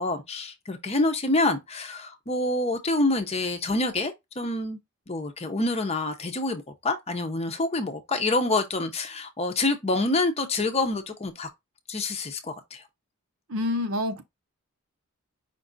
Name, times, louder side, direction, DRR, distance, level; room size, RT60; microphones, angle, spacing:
voice 1, 0.0-4.8 5.1-11.5 11.9-12.8, left 2 dB, 30° left, 0.6 m, -27 dB
voice 2, 13.5-14.2, left 2 dB, 65° right, 0.8 m, -27 dB
5.2 x 2.4 x 3.8 m
head